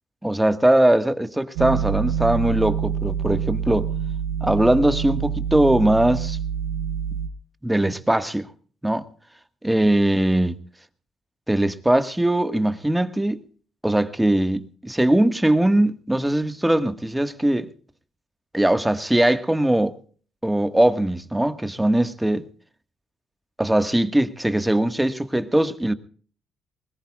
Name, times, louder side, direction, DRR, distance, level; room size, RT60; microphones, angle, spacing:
voice 1, 0.2-3.9 4.4-6.4 7.6-8.5 8.8-9.1 9.6-10.5 11.5-13.4 13.8-17.7 18.5-20.0 20.4-22.5 23.6-25.9, right 1 dB, 10° right, 1.8 m, -20 dB
sound 1, 1.6-7.3, right 8 dB, 85° right, 1.0 m, -26 dB
22.5 x 20.5 x 2.5 m
hypercardioid pair, 45°, 0 cm